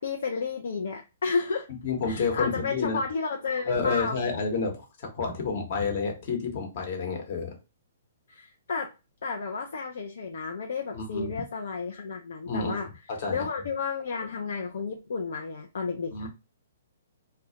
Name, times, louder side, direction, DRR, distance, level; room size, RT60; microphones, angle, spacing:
voice 1, 0.0-1.7 2.0-4.2 8.3-8.9 9.2-12.9 13.3-16.3, left 4 dB, 65° left, 3 dB, 0.3 m, -32 dB
voice 2, 1.8-3.0 3.7-7.6 10.9-11.3 12.5-13.5 16.1-16.3, left 4 dB, 50° left, 3 dB, 0.9 m, -30 dB
2.2 x 2.1 x 2.7 m, 0.29 s
hypercardioid pair, 130°, 0 cm